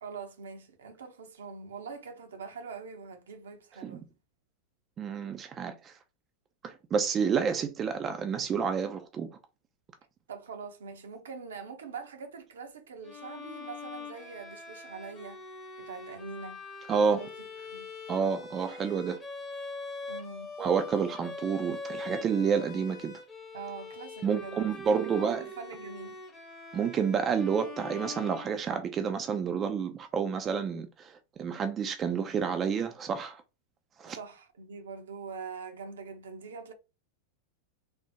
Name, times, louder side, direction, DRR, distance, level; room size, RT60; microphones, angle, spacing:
voice 1, 0.0-4.1 10.3-15.4 15.8-16.6 16.9-17.3 17.7-17.9 20.1-20.6 23.5-26.2 34.1-36.7, right 5 dB, 65° right, 0.6 m, -43 dB
voice 2, 5.0-5.9 6.6-9.3 16.9-17.2 18.1-19.2 20.6-23.2 24.2-25.4 26.7-33.4 34.0-34.2, right 6 dB, 25° right, 0.3 m, -29 dB
Bowed string instrument, 13.0-29.0, left 2 dB, 20° left, 0.8 m, -43 dB
3.4 x 2.1 x 2.7 m
figure-of-eight pair, 90°, 0 cm